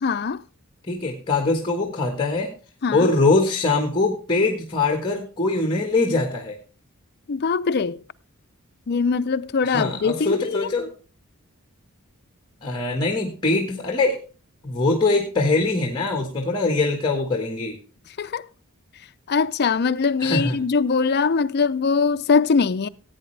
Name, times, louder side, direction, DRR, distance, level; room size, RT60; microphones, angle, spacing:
voice 1, 0.0-0.4 2.8-3.1 7.3-8.0 8.9-10.7 18.2-18.4 19.3-22.9, left 5 dB, 45° left, 0.5 m, -22 dB
voice 2, 0.9-2.5 2.9-6.6 9.6-10.9 12.6-14.2 14.6-17.8 20.2-20.6, left 3 dB, 20° left, 1.5 m, -22 dB
15.5 x 8.7 x 3.3 m
head